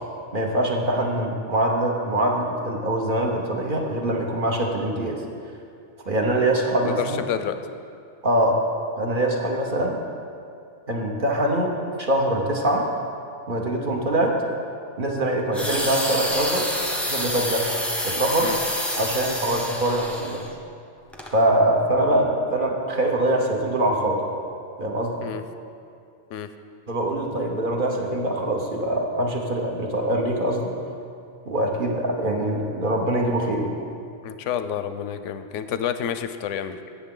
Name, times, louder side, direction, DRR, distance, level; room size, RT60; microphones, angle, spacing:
voice 1, 0.3-5.2 6.1-7.2 8.2-8.6 9.0-10.0 10.9-12.9 13.5-14.4 15.0-17.7 18.0-18.5 19.0-20.4 21.3-24.2 24.8-25.1 26.9-30.7 31.5-33.8, right 1 dB, 45° right, 0 dB, 1.1 m, -23 dB
voice 2, 6.9-7.5 18.4-18.6 25.2-25.4 26.3-26.5 34.2-36.8, left 9 dB, 80° left, 10 dB, 0.9 m, -29 dB
sound 1, 15.5-20.5 21.1-21.3, equal, ahead, 0.7 m, -28 dB
15.5 x 6.9 x 3.8 m, 2.5 s
omnidirectional pair, 1.2 m